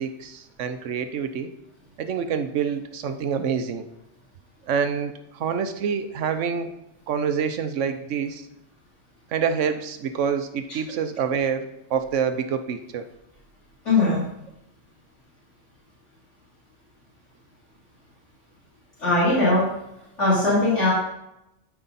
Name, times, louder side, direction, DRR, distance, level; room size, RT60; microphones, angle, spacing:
voice 1, 0.0-1.5 2.0-3.9 4.6-6.7 7.1-8.5 9.3-13.1, right 7 dB, 90° right, 9 dB, 1.1 m, -27 dB
voice 2, 13.9-14.2 19.0-19.6 20.2-20.9, left 2 dB, 80° left, -8 dB, 3.5 m, -19 dB
12.5 x 4.8 x 4.1 m, 0.85 s
omnidirectional pair, 1.2 m